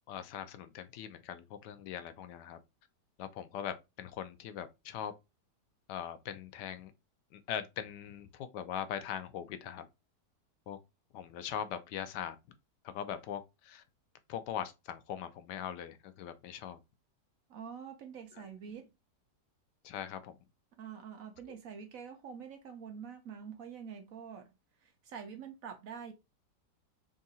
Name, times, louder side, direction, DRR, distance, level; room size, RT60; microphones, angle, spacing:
voice 1, 0.1-2.6 3.2-5.1 5.9-6.9 7.3-9.9 10.7-10.8 11.1-12.4 12.8-13.8 14.3-16.8 18.4-18.5 19.8-20.4, left 9 dB, 80° left, 1.2 m, -41 dB
voice 2, 17.5-18.9 20.8-26.1, right 7 dB, 65° right, 0.9 m, -46 dB
3.6 x 2.5 x 4.0 m
omnidirectional pair, 1.8 m